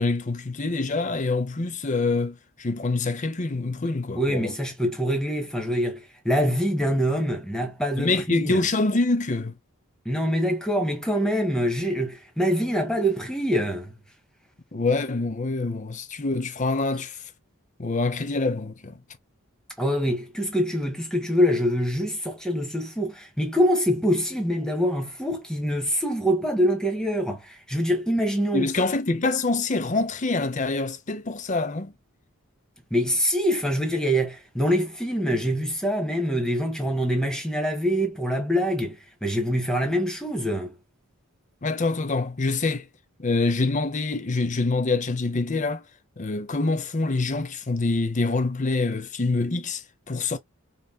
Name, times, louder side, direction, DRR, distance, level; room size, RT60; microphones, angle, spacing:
voice 1, 0.0-4.5 8.0-9.6 14.7-17.2 17.8-19.0 28.5-31.9 41.6-42.9 43.2-45.8 46.2-50.4, left 3 dB, 35° left, 0.6 m, -25 dB
voice 2, 4.1-8.6 10.0-13.9 19.8-28.7 32.9-40.7, equal, 5° left, 1.3 m, -25 dB
5.5 x 3.1 x 2.2 m
head